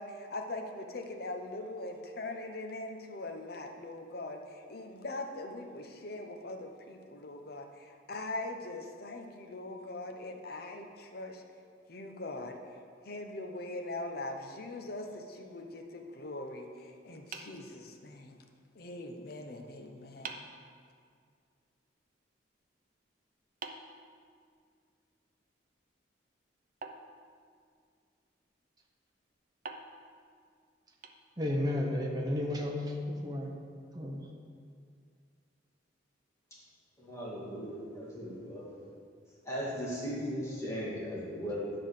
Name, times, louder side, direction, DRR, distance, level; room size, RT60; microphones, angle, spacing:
voice 1, 0.0-11.4 11.9-12.6 13.0-18.4 18.7-20.5, left 2 dB, 55° left, 4 dB, 0.8 m, -41 dB
sound 1, 17.3-18.4 19.6-19.7 20.2-20.7 23.6-24.8 26.8-27.9 29.6-31.7, right 4 dB, 45° right, 0.5 m, -48 dB
voice 2, 31.4-33.5 33.9-34.3, left 1 dB, 20° right, 0 dB, 1.0 m, -32 dB
voice 3, 37.0-38.8 39.4-41.8, equal, 15° left, -8 dB, 2.0 m, -37 dB
10.5 x 3.9 x 6.5 m, 2.2 s
head